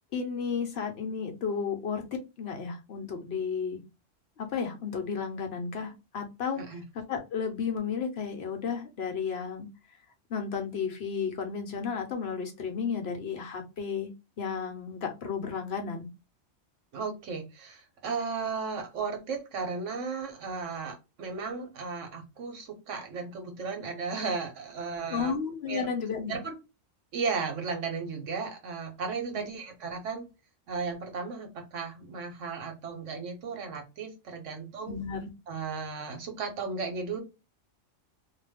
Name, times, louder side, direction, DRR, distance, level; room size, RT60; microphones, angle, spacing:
voice 1, 0.1-3.8 4.4-9.7 10.3-14.1 14.4-16.1 25.1-26.4 34.9-35.3, left 6 dB, 60° left, 0.9 m, -33 dB
voice 2, 16.9-25.3 25.7-25.9 26.3-26.6 27.1-30.3 30.7-35.0 35.5-37.2, right 5 dB, 75° right, 1.2 m, -35 dB
2.5 x 2.3 x 3.3 m
omnidirectional pair, 1.3 m